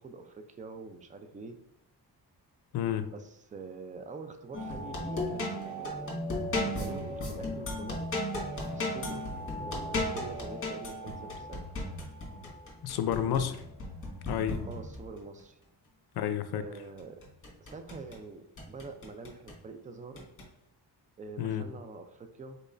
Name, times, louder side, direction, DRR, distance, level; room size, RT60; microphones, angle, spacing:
voice 1, 0.0-1.6 3.1-6.1 6.6-8.1 8.7-9.3 9.6-11.7 14.7-15.6 16.5-17.2 17.6-20.3 21.2-22.6, right 4 dB, 20° right, 7 dB, 0.3 m, -45 dB
voice 2, 2.7-3.1 12.8-13.6 14.3-14.6 16.2-16.6 21.4-21.6, left 9 dB, 85° left, 10 dB, 0.5 m, -30 dB
sound 1, 4.5-15.2 17.0-18.2 18.6-19.6 20.2-20.5, left 1 dB, 35° left, 1.4 m, -36 dB
5.2 x 4.0 x 2.5 m, 0.74 s
wide cardioid pair, 155°, 37 cm